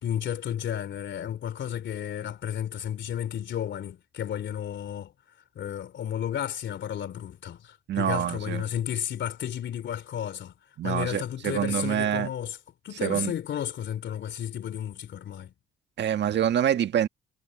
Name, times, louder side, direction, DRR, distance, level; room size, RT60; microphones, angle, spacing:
voice 1, 0.0-5.1 5.5-10.5 10.8-12.6 12.8-15.5, left 10 dB, 65° left, 3.1 m, -32 dB
voice 2, 7.9-8.6 10.8-12.3 13.0-13.3 16.0-17.1, right 10 dB, 60° right, 1.5 m, -26 dB
cardioid pair, 90°, 20 cm